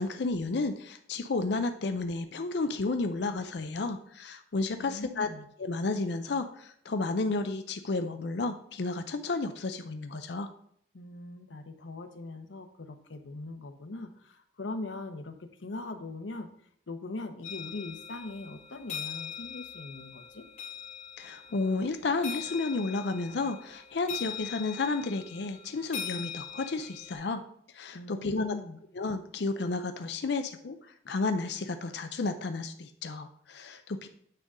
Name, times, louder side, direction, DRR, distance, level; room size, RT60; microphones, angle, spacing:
voice 1, 0.0-5.3 5.6-10.5 21.2-27.4 27.7-28.6 28.9-30.8 31.1-34.1, left 3 dB, 65° left, 8 dB, 0.5 m, -32 dB
voice 2, 4.7-5.5 10.9-16.5 16.9-20.5 27.9-28.8, left 2 dB, 90° left, 7 dB, 0.9 m, -41 dB
sound 1, 17.4-27.1, left 8 dB, 40° left, 3.0 m, -42 dB
9.0 x 3.7 x 5.3 m, 0.66 s
head